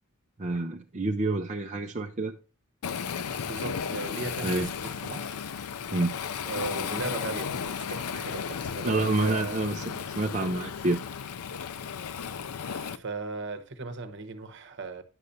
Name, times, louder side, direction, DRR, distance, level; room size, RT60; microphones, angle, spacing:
voice 1, 0.4-2.3 4.4-4.7 5.9-6.1 8.8-11.0, right 2 dB, 30° right, 0.6 m, -28 dB
Waves surf, 2.8-13.0, left 7 dB, 90° left, 0.5 m, -34 dB
voice 2, 3.4-5.4 6.4-9.6 12.6-15.0, right 3 dB, 55° right, 1.1 m, -37 dB
11.0 x 6.7 x 2.6 m
head